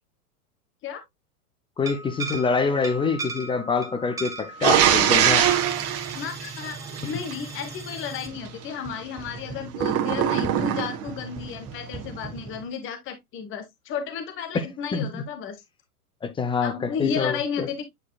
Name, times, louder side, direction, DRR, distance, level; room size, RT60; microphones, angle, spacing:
voice 1, 1.8-5.5 14.5-14.6 14.9-15.2 16.2-17.7, left 5 dB, 10° left, 0.7 m, -26 dB
sound 1, 1.8-12.7, right 3 dB, 5° right, 1.1 m, -38 dB
sound 2, 4.6-7.3 9.7-11.2, right 10 dB, 30° right, 1.4 m, -22 dB
voice 2, 6.1-15.6 16.6-17.9, left 7 dB, 25° left, 1.3 m, -33 dB
9.0 x 4.7 x 2.3 m
hypercardioid pair, 115°, 45 cm